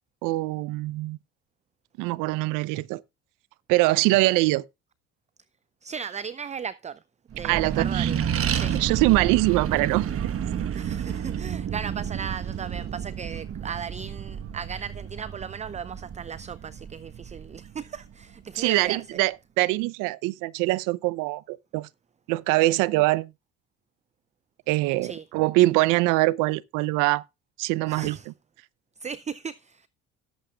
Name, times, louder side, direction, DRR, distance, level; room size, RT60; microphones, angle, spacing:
voice 1, 0.2-1.2 2.0-3.0 3.7-4.6 7.4-8.1 8.8-10.1 18.6-21.9 22.3-23.3 24.7-27.2 27.6-28.2, right 20 dB, 75° right, 0.7 m, -23 dB
voice 2, 5.8-7.0 7.3-8.2 8.5-8.8 10.7-19.2 25.0-25.2 27.9-28.3 29.0-29.9, right 7 dB, 20° right, 0.5 m, -36 dB
Accelerating revving vroom, 7.3-18.2, right 8 dB, 45° right, 1.3 m, -30 dB
17.5 x 8.1 x 2.4 m
hypercardioid pair, 65°, 32 cm